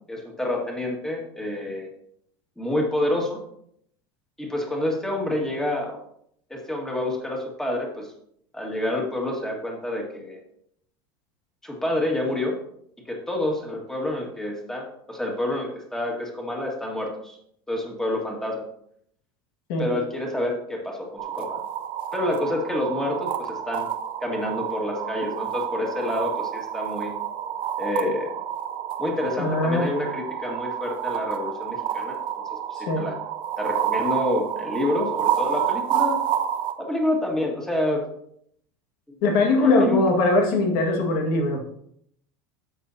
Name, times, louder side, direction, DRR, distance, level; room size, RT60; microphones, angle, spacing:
voice 1, 0.1-1.9 2.6-3.4 4.4-6.0 6.5-8.1 8.5-10.4 11.6-12.5 13.1-17.4 17.7-18.6 19.8-21.6 22.1-23.9 24.2-27.1 27.8-28.3 29.0-32.4 32.7-33.2 33.6-36.2 36.8-38.0 39.6-40.0, left 1 dB, 5° left, 0 dB, 1.8 m, -28 dB
sound 1, 21.2-36.7, right 9 dB, 45° right, 0.9 m, -29 dB
voice 2, 29.4-29.9 32.8-33.1 39.2-41.6, left 2 dB, 75° left, 2 dB, 1.8 m, -21 dB
12.0 x 7.7 x 2.8 m, 0.70 s
supercardioid pair, 150°, 12 cm